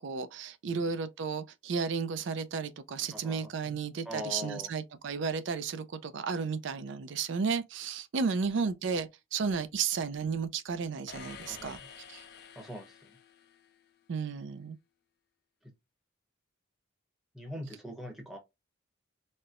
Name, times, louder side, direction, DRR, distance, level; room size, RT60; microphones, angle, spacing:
voice 1, 0.0-11.8 12.1-12.2 14.1-14.8, right 5 dB, 65° right, 0.4 m, -33 dB
voice 2, 3.1-3.8 4.0-4.7 11.5-11.9 12.6-13.1 15.6-15.7 17.3-18.4, left 1 dB, ahead, 0.8 m, -42 dB
sound 1, 11.1-13.9, left 6 dB, 50° left, 0.5 m, -50 dB
4.2 x 2.1 x 2.4 m
head